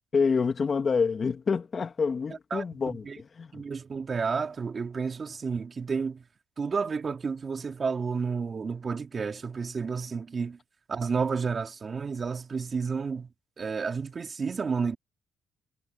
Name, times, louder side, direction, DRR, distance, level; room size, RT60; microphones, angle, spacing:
voice 1, 0.1-3.6, left 5 dB, 40° left, 2.1 m, -27 dB
voice 2, 3.5-6.2 6.6-10.6 10.9-13.3 13.6-15.0, right 5 dB, 40° right, 3.3 m, -31 dB
cardioid pair, 90°, 0 cm